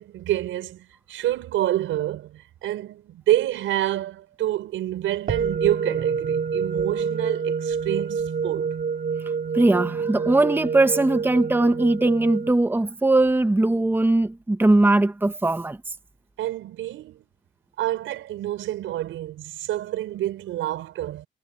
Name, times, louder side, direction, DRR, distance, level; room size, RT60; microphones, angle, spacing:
voice 1, 0.0-8.7 16.4-17.2 17.8-21.3, right 13 dB, 85° right, 6.1 m, -27 dB
sound 1, 5.3-12.5, right 6 dB, 50° right, 4.7 m, -27 dB
voice 2, 9.5-15.8, right 2 dB, 10° right, 1.2 m, -20 dB
cardioid pair, 90°, 20 cm